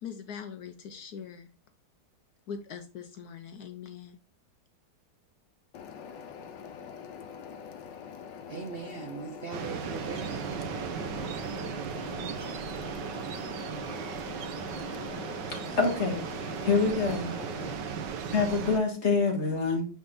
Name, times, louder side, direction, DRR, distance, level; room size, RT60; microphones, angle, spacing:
voice 1, 0.0-1.5 2.5-4.2, left 7 dB, 70° left, 1.1 m, -41 dB
sound 1, 5.7-17.7, left 7 dB, 85° left, 1.5 m, -44 dB
voice 2, 8.5-11.2, right 5 dB, 45° right, 0.8 m, -41 dB
sound 2, 9.5-18.8, right 6 dB, 80° right, 1.5 m, -36 dB
voice 3, 15.6-16.2 16.6-17.4 18.3-19.9, left 4 dB, 40° left, 1.9 m, -26 dB
8.7 x 3.7 x 4.0 m
omnidirectional pair, 1.9 m